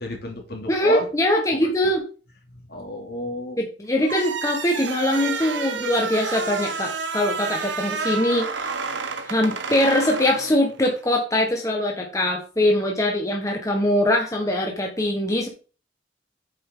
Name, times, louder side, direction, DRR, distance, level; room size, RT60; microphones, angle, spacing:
voice 1, 0.0-1.1 1.6-1.7 2.5-3.6, left 1 dB, 60° left, 1 dB, 2.8 m, -31 dB
voice 2, 0.7-2.0 3.6-8.7 9.3-15.5, left 1 dB, 20° left, 0 dB, 1.4 m, -22 dB
sound 1, 4.0-11.0, right 5 dB, 90° right, 1.1 m, -30 dB
8.8 x 6.7 x 3.8 m, 0.35 s
head